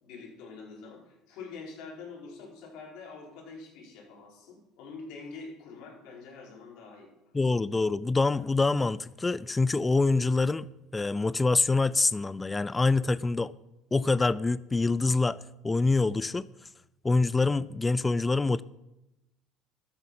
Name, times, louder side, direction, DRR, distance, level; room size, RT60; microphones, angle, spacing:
voice 1, 0.0-7.1, left 4 dB, 70° left, -2 dB, 4.8 m, -45 dB
voice 2, 7.3-10.7 10.9-13.5 13.9-15.4 15.6-16.5 17.0-18.6, left 3 dB, 15° left, 19 dB, 0.3 m, -25 dB
13.0 x 8.1 x 5.7 m, 0.92 s
supercardioid pair, 110°, 0 cm